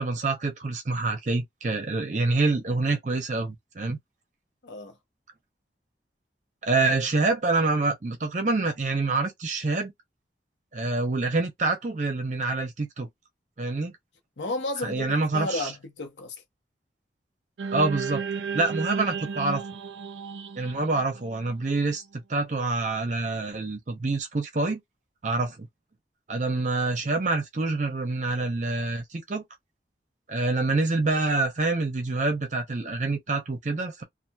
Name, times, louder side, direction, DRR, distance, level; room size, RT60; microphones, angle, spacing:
voice 1, 0.0-4.0 6.6-9.9 10.7-13.1 13.6-13.9 14.8-15.7 17.7-18.2 18.5-19.6 20.6-24.8 25.2-25.7 26.3-29.4 30.3-34.0, right 3 dB, 45° right, 0.6 m, -26 dB
voice 2, 4.6-4.9 14.4-16.4, left 2 dB, 90° left, 0.9 m, -32 dB
sound 1, 17.6-21.9, right 5 dB, 90° right, 0.4 m, -33 dB
2.8 x 2.4 x 2.3 m
head